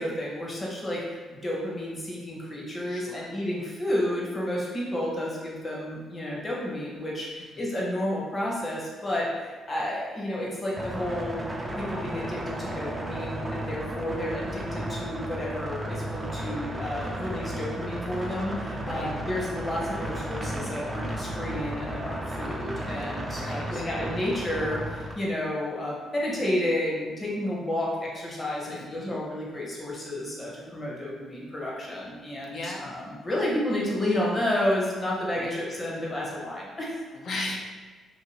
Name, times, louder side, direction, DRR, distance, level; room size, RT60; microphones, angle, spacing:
voice 1, 0.0-11.4 11.8-37.0, left 1 dB, 30° left, -4 dB, 0.9 m, -31 dB
voice 2, 2.9-3.3 7.5-7.6 18.8-19.1 23.3-23.9 28.7-29.2 32.5-33.1 35.4-35.5 37.1-37.6, left 2 dB, 55° left, -1 dB, 0.5 m, -37 dB
sound 1, 10.7-25.1, right 1 dB, 20° right, 0.4 m, -34 dB
2.6 x 2.5 x 3.0 m, 1.3 s
cardioid pair, 90°, 0 cm